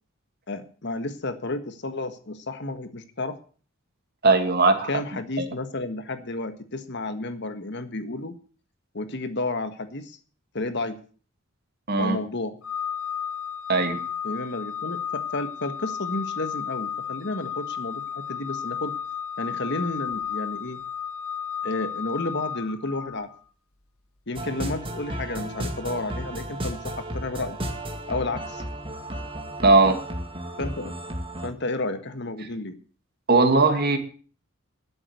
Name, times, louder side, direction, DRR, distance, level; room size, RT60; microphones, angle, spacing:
voice 1, 0.5-3.4 4.9-8.3 8.9-10.2 10.5-11.0 12.0-12.5 14.2-18.9 19.4-20.8 21.6-23.3 24.3-27.6 28.1-28.6 30.6-30.9 31.4-32.7, left 2 dB, 55° left, 9 dB, 1.6 m, -31 dB
voice 2, 4.2-4.9 5.4-5.5 11.9-12.2 13.7-14.0 29.6-30.0 33.3-34.0, right 3 dB, 45° right, 6 dB, 2.3 m, -19 dB
Organ, 12.6-23.4, left 8 dB, 75° left, 1.6 m, -33 dB
sound 1, 24.3-31.5, right 1 dB, 25° right, 2.1 m, -33 dB
12.5 x 7.6 x 8.1 m, 0.41 s
head